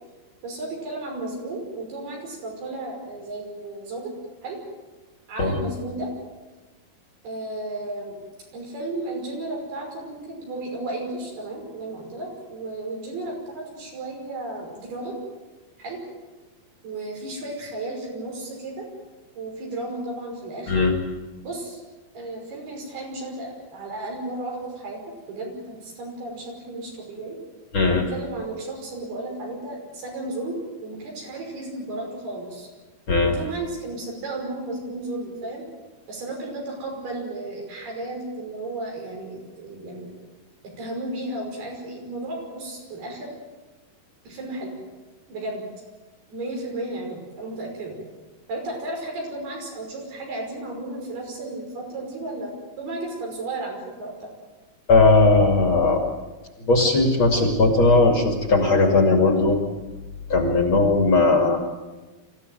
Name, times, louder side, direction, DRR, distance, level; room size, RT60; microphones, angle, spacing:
voice 1, 0.4-4.1 4.4-4.6 5.3-6.1 7.2-8.2 8.5-15.1 15.8-16.0 16.8-18.9 19.4-20.8 21.4-21.8 22.1-25.0 25.3-27.4 27.9-32.7 33.2-35.6 36.1-40.1 40.8-43.3 44.2-44.7 45.3-45.6 46.3-48.0 48.5-54.3, right 2 dB, 75° right, 0 dB, 7.6 m, -33 dB
voice 2, 54.9-56.0 56.6-59.6 60.3-61.6, left 3 dB, 35° left, 3 dB, 2.7 m, -18 dB
25.0 x 15.5 x 9.3 m, 1.2 s
omnidirectional pair, 4.6 m